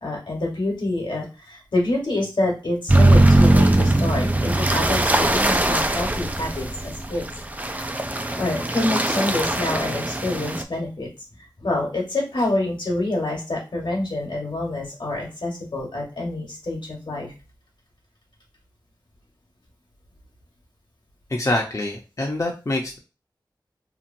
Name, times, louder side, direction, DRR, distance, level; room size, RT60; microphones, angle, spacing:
voice 1, 0.0-7.2 7.6-7.7 8.4-11.1 11.6-17.3, left 2 dB, 70° left, -1 dB, 1.2 m, -27 dB
sound 1, 2.9-10.6, right 1 dB, 20° right, 0.4 m, -20 dB
voice 2, 21.3-23.0, left 1 dB, 40° left, 0 dB, 0.7 m, -25 dB
3.0 x 2.4 x 2.6 m, 0.31 s
wide cardioid pair, 50°, 9 cm